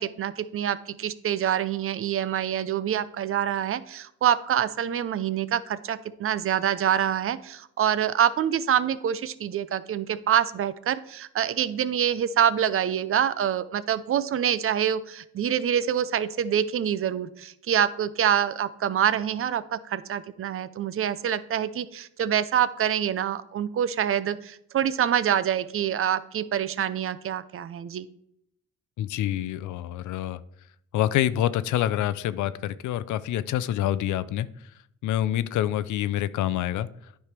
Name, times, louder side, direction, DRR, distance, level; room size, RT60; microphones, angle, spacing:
voice 1, 0.0-28.1, right 9 dB, 45° right, 15 dB, 0.5 m, -26 dB
voice 2, 29.0-30.4 30.9-34.5 35.0-36.9, left 12 dB, 75° left, 16 dB, 0.5 m, -26 dB
9.7 x 3.4 x 5.9 m, 0.75 s
cardioid pair, 90°, 30 cm